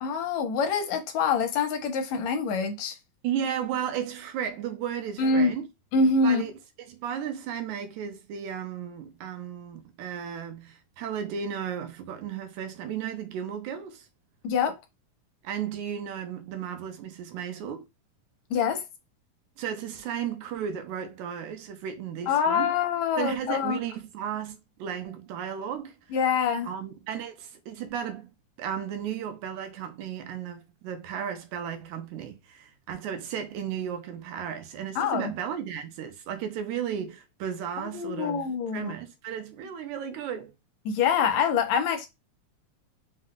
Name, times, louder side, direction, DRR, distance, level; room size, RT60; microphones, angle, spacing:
voice 1, 0.0-3.0 5.2-5.5 5.9-6.4 14.4-14.8 18.5-18.8 22.3-23.8 26.1-26.7 35.0-35.3 37.9-38.9 40.9-42.1, left 5 dB, 75° left, 1.9 m, -25 dB
voice 2, 3.2-5.7 6.2-6.5 6.8-14.1 15.4-17.9 19.6-22.7 23.2-26.0 26.6-28.3 28.6-40.5, right 8 dB, 85° right, 2.1 m, -34 dB
5.5 x 2.2 x 3.7 m
omnidirectional pair, 3.4 m